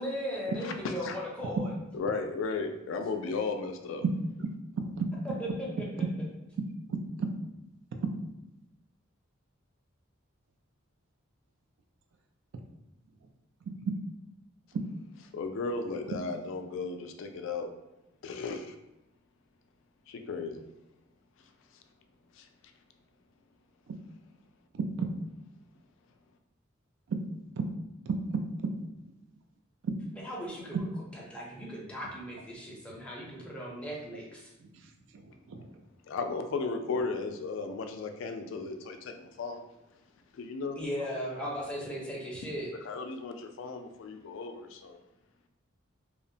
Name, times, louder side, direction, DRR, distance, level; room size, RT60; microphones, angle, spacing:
voice 1, 0.0-1.7 5.4-5.8 30.2-30.9 31.1-34.5 40.8-42.7, equal, 5° left, -5 dB, 0.5 m, -37 dB
voice 2, 0.6-1.2 1.9-4.0 15.3-17.7 18.2-18.7 20.1-20.6 22.3-22.5 36.1-39.6 40.3-40.9 41.2-41.3 42.9-45.0, left 4 dB, 65° left, 6 dB, 0.3 m, -35 dB
voice 3, 4.8-5.1 6.0-6.1 6.9-7.3 8.0-8.1 13.7-14.0 14.7-14.8 23.9-24.0 24.7-25.1 27.1-27.2 27.6-27.7 28.1-28.7 29.8-29.9 34.6-34.7 35.5-35.7, right 4 dB, 65° right, 5 dB, 0.3 m, -32 dB
2.8 x 2.0 x 2.6 m, 0.93 s
head